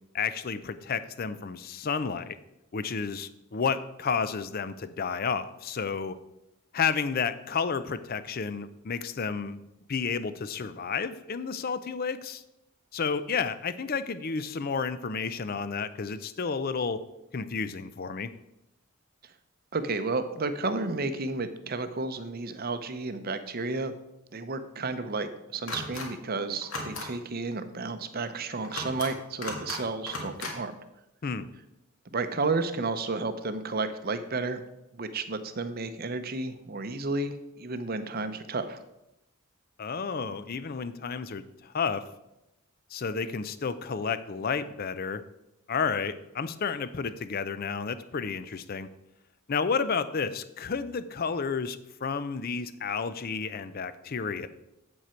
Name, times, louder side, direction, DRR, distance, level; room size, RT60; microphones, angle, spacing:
voice 1, 0.1-2.4 2.7-6.2 6.7-9.6 9.9-12.4 12.9-17.0 17.3-18.3 31.2-31.5 39.8-42.0 42.9-45.2 45.7-48.9 49.5-54.5, left 5 dB, 40° left, 13 dB, 0.5 m, -31 dB
voice 2, 19.7-23.9 24.3-30.7 32.1-34.6 34.9-38.8, right 3 dB, 45° right, 10 dB, 0.7 m, -32 dB
sound 1, 25.7-26.1 26.6-27.1 28.6-29.1 29.4-29.8 30.1-30.5, left 2 dB, 70° left, 1.9 m, -35 dB
8.2 x 7.6 x 4.4 m, 0.88 s
head